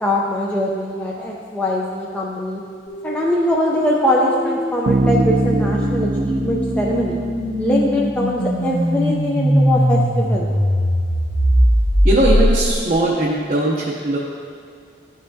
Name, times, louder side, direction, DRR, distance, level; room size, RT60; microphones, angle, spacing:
voice 1, 0.0-2.6 3.0-7.2 7.6-10.5, left 1 dB, 5° left, -4 dB, 0.5 m, -22 dB
sound 1, 2.9-12.9, equal, 45° left, 1.9 m, -20 dB
Bass guitar, 4.8-8.6, right 2 dB, 90° right, 0.4 m, -23 dB
voice 2, 12.0-14.2, right 1 dB, 45° right, -5 dB, 0.7 m, -19 dB
12.0 x 5.6 x 2.7 m, 2.2 s
head